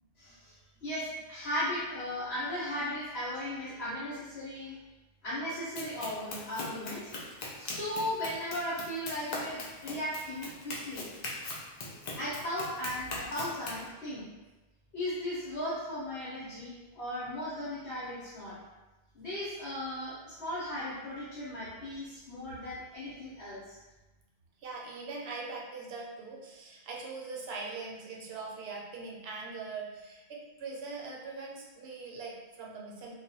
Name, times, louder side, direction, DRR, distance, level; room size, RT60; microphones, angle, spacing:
voice 1, 0.2-0.6 0.8-4.7 5.2-7.1 7.6-11.1 12.2-14.2 14.9-18.6 19.1-23.8, left 1 dB, 85° left, -9 dB, 1.0 m, -36 dB
Run, 5.7-13.9, left 2 dB, 55° left, 0.5 m, -41 dB
voice 2, 24.6-33.1, right 4 dB, 75° right, -2 dB, 0.8 m, -41 dB
2.3 x 2.1 x 2.7 m, 1.1 s
omnidirectional pair, 1.1 m